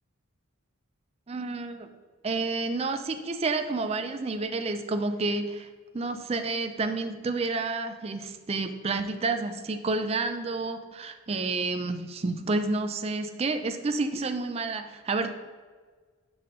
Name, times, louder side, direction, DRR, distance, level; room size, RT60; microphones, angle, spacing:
voice 1, 1.3-1.9 2.2-5.7 5.9-15.4, right 3 dB, 30° right, 7 dB, 0.4 m, -30 dB
7.0 x 5.1 x 2.8 m, 1.5 s
head